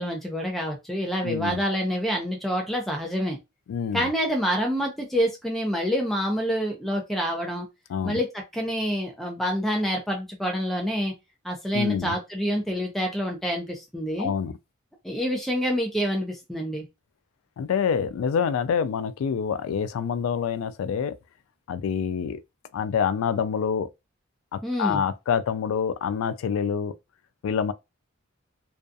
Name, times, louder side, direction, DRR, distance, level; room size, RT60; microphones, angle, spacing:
voice 1, 0.0-3.4 3.9-7.7 8.0-11.1 11.4-14.3 15.0-16.9 24.6-25.0, equal, ahead, 0.5 m, -27 dB
voice 2, 1.2-1.6 3.7-4.1 7.9-8.2 11.7-12.2 14.2-14.5 17.6-21.2 21.7-22.4 22.7-23.9 24.5-26.9 27.4-27.7, left 7 dB, 90° left, 0.3 m, -26 dB
2.4 x 2.3 x 2.6 m
head